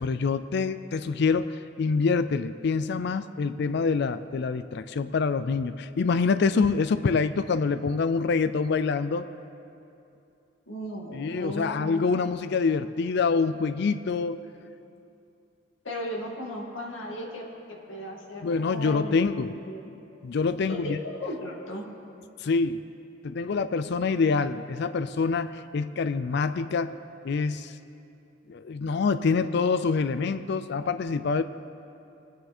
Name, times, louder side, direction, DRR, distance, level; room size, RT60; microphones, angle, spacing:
voice 1, 0.0-9.3 11.1-14.4 18.4-19.5 20.2-21.0 22.4-22.9 23.2-27.0 27.2-27.7 28.5-31.4, left 4 dB, 60° left, 12 dB, 0.4 m, -26 dB
voice 2, 10.7-12.3 15.8-19.9 20.7-21.9, equal, 90° left, -1 dB, 2.1 m, -36 dB
23.0 x 9.2 x 4.3 m, 2.7 s
head